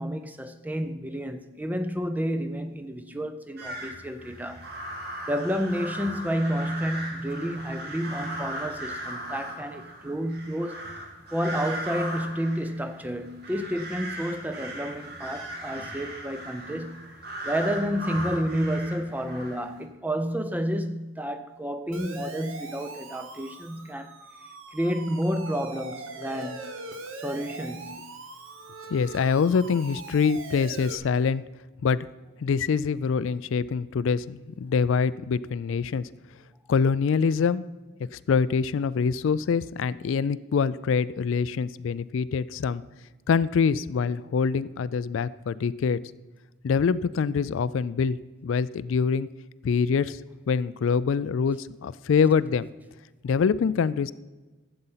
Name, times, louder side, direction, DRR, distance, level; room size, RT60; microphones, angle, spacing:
voice 1, 0.0-4.7 5.3-10.9 11.3-17.1 17.4-24.2 24.7-26.6 27.2-28.1, equal, 10° right, 0.5 m, -30 dB
sound 1, 3.6-19.8, right 1 dB, 45° right, 1.9 m, -38 dB
Siren, 21.9-31.0, right 3 dB, 75° right, 1.1 m, -41 dB
voice 2, 28.9-31.4 31.8-32.1 32.4-36.1 36.7-37.6 38.1-42.8 43.3-46.0 46.6-49.3 49.6-50.2 50.5-52.7 53.2-54.1, left 5 dB, 70° left, 0.3 m, -25 dB
12.0 x 7.9 x 5.6 m
head